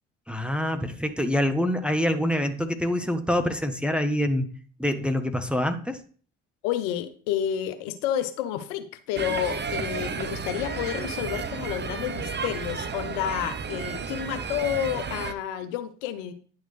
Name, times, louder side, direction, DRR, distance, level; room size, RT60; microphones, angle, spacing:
voice 1, 0.3-4.5 4.8-6.0, left 1 dB, 5° right, 6 dB, 1.1 m, -25 dB
voice 2, 6.6-16.3, left 10 dB, 80° left, 10 dB, 0.9 m, -30 dB
sound 1, 9.2-15.3, right 6 dB, 30° right, 0.9 m, -32 dB
10.5 x 6.4 x 3.3 m, 0.43 s
hypercardioid pair, 60°, 36 cm